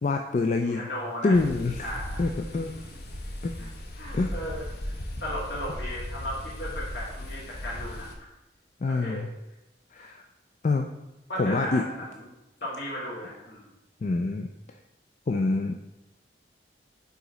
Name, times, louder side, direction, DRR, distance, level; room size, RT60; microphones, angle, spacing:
voice 1, 0.0-0.9 1.2-1.9 2.2-2.7 3.4-3.5 4.1-4.3 8.8-9.3 9.9-10.3 10.6-10.9 11.4-11.8 14.0-14.5 15.3-15.8, left 3 dB, 40° left, 3 dB, 0.3 m, -26 dB
voice 2, 0.6-1.4 1.8-2.3 2.7-2.8 3.6-3.7 4.0-4.6 5.2-8.3 8.8-9.2 10.0-10.1 11.3-12.3 12.6-13.6, equal, 80° left, -5 dB, 2.1 m, -36 dB
sound 1, 1.3-8.2, left 1 dB, 65° left, 0.8 m, -37 dB
4.9 x 4.0 x 5.0 m, 0.94 s
head